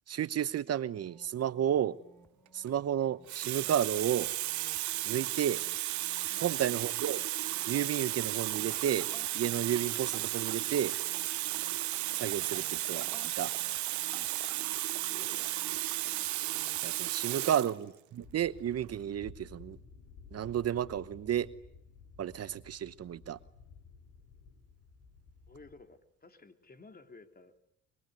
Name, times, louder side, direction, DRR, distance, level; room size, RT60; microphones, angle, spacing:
voice 1, 0.1-2.0 2.5-4.3 5.1-5.6 6.4-7.2 7.7-9.1 9.3-10.9 12.1-13.1 13.4-13.5 16.8-19.8 20.3-21.5 22.2-23.4, right 10 dB, 55° right, 15 dB, 1.0 m, -32 dB
sound 1, 0.8-16.9, right 1 dB, 5° left, 3.1 m, -60 dB
Water tap faucet, 2.5-2.7 3.3-17.8 18.7-18.8, right 16 dB, 75° right, 1.0 m, -34 dB
voice 2, 6.3-6.6 15.1-15.6 17.3-17.6 25.5-27.6, left 3 dB, 30° left, 7 dB, 3.5 m, -55 dB
sound 2, 18.2-25.8, left 5 dB, 85° left, 5.9 m, -54 dB
25.0 x 23.5 x 9.5 m, 0.79 s
supercardioid pair, 70°, 29 cm